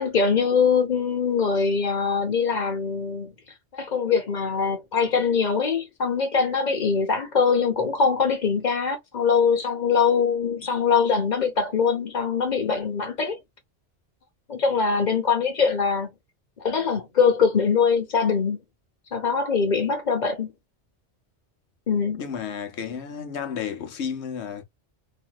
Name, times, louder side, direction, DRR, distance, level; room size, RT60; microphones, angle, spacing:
voice 1, 0.0-3.3 3.7-13.4 14.5-16.1 16.6-18.6 19.1-20.5 21.9-22.2, left 5 dB, 40° left, 1.0 m, -23 dB
voice 2, 22.1-24.6, left 7 dB, 70° left, 1.0 m, -32 dB
3.1 x 2.7 x 2.2 m
omnidirectional pair, 1.2 m